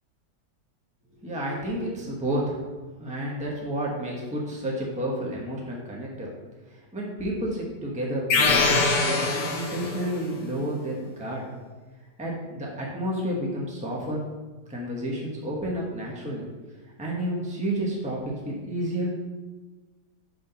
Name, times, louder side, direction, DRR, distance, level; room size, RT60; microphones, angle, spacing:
voice 1, 1.2-2.6 3.0-6.3 6.9-8.7 9.0-11.5 12.2-14.2 14.7-16.4 17.0-19.2, right 1 dB, 5° right, -3 dB, 0.9 m, -30 dB
sound 1, 8.3-10.2, left 3 dB, 90° left, 1.5 m, -23 dB
5.7 x 3.8 x 5.7 m, 1.3 s
omnidirectional pair, 1.8 m